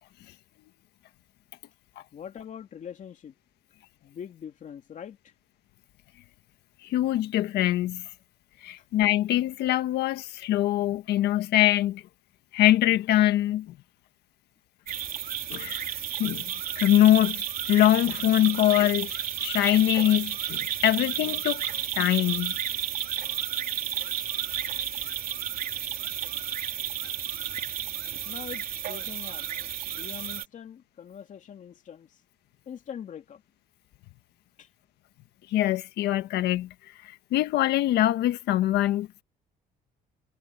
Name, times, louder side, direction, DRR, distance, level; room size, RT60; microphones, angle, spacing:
voice 1, 2.1-3.3 4.0-5.3 8.8-8.9 28.2-32.2 32.7-33.4 34.6-34.7, left 8 dB, 50° left, 2.7 m, -43 dB
voice 2, 6.8-8.1 8.6-12.0 12.5-13.7 15.5-15.9 16.2-19.1 19.4-21.7 21.9-22.5 35.5-36.7 37.3-39.2, left 13 dB, 75° left, 1.5 m, -23 dB
sound 1, 14.9-30.5, right 10 dB, 60° right, 3.2 m, -32 dB
cardioid pair, 110°, 17 cm